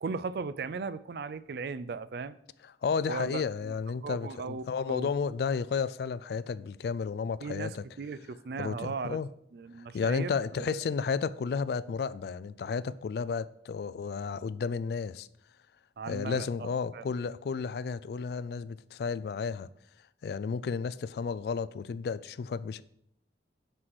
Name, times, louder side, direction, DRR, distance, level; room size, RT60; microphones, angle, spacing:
voice 1, 0.0-2.4 3.1-3.7 4.0-5.1 7.4-9.2 9.5-10.3 10.7-10.8 16.0-17.0, right 4 dB, 60° right, 0.4 m, -37 dB
voice 2, 2.8-7.8 8.6-9.3 9.9-15.3 16.1-19.7 20.2-22.8, left 5 dB, 60° left, 0.3 m, -32 dB
6.1 x 4.7 x 6.2 m
head